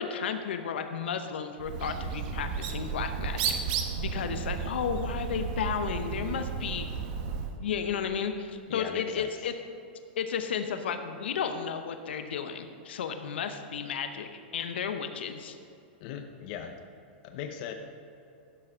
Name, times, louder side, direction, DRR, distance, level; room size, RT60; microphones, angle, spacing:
voice 1, 0.0-6.9 7.6-9.5 10.2-15.6, left 7 dB, 85° left, 7 dB, 0.8 m, -33 dB
Bird, 1.6-7.6, right 6 dB, 50° right, 1.1 m, -33 dB
voice 2, 8.7-9.3 16.0-16.7 17.2-17.7, left 8 dB, 50° left, 5 dB, 0.7 m, -38 dB
11.5 x 6.5 x 5.6 m, 2.7 s
hypercardioid pair, 135°, 6 cm